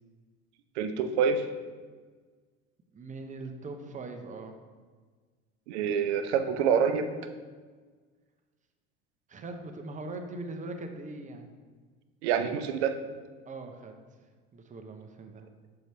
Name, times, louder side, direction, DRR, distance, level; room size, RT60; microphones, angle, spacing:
voice 1, 0.8-1.5 5.7-7.1 12.2-12.9, right 7 dB, 70° right, 9 dB, 0.6 m, -26 dB
voice 2, 2.9-4.5 9.3-11.5 13.5-13.9 14.5-15.5, right 2 dB, 20° right, 5 dB, 0.7 m, -41 dB
6.5 x 4.8 x 3.2 m, 1.5 s
hypercardioid pair, 70°, 34 cm